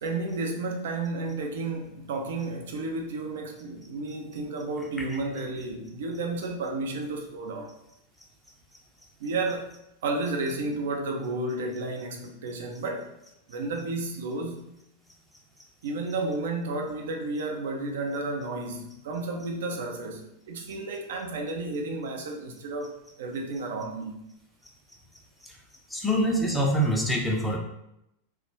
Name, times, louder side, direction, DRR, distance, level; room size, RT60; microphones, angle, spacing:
voice 1, 0.0-7.7 9.2-9.7 10.0-13.1 13.5-14.8 15.8-24.2, right 2 dB, 60° right, 0.4 m, -32 dB
voice 2, 25.9-27.6, equal, 5° left, 0.4 m, -24 dB
2.2 x 2.1 x 3.0 m
figure-of-eight pair, 90°, 0 cm